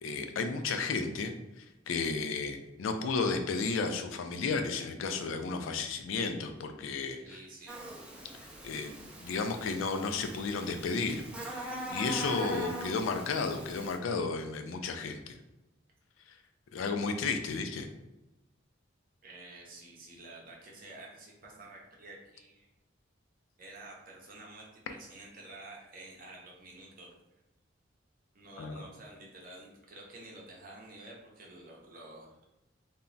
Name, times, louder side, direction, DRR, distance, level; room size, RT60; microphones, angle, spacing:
voice 1, 0.0-7.4 8.6-11.2 11.9-15.3 16.7-17.9 28.6-28.9, left 4 dB, 90° left, 6 dB, 0.4 m, -33 dB
voice 2, 7.2-7.8 19.2-22.7 23.6-27.1 28.3-32.5, right 2 dB, 45° right, -2 dB, 0.6 m, -50 dB
Buzz, 7.7-14.0, right 1 dB, 5° right, 0.4 m, -42 dB
2.2 x 2.0 x 3.8 m, 0.97 s
head